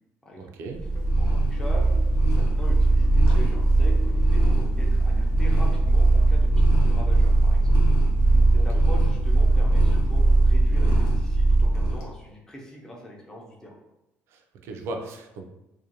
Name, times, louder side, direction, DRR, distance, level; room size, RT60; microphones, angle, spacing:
voice 1, 0.4-0.8 8.5-8.6 14.3-15.4, right 2 dB, 65° right, 3 dB, 0.4 m, -37 dB
Purr, 0.8-12.1, right 2 dB, 85° left, 0.7 m, -19 dB
sound 1, 0.9-6.0, left 3 dB, 55° left, 0.6 m, -44 dB
voice 2, 1.2-1.9 2.3-7.8 8.5-13.8, equal, 10° left, -2 dB, 0.5 m, -42 dB
2.4 x 2.1 x 2.8 m, 0.91 s
cardioid pair, 150°, 5 cm